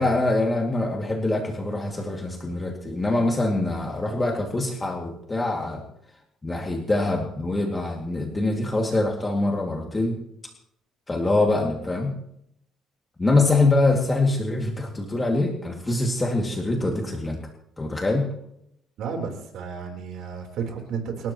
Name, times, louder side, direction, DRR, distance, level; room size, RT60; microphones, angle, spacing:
voice 1, 0.0-5.8 6.4-10.2 11.1-12.1 13.2-17.4 17.8-18.3, left 2 dB, 15° left, 0 dB, 2.4 m, -24 dB
voice 2, 19.0-21.3, right 6 dB, 70° right, 2 dB, 3.9 m, -32 dB
29.5 x 13.0 x 3.1 m, 0.76 s
cardioid pair, 135°, 0 cm